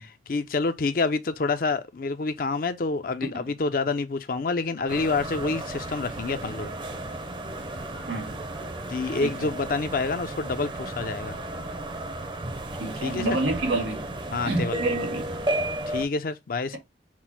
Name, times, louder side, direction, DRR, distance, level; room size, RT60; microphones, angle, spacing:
voice 1, 0.3-6.7 8.9-11.4 13.0-13.4 14.3-14.8 15.9-16.8, left 4 dB, 50° left, 0.4 m, -27 dB
sound 1, 4.9-16.1, right 1 dB, 25° right, 0.6 m, -33 dB
voice 2, 6.3-6.7 8.1-8.4 9.2-9.5 12.8-14.1 14.4-15.4, right 2 dB, 85° right, 1.9 m, -29 dB
5.9 x 2.0 x 4.3 m
head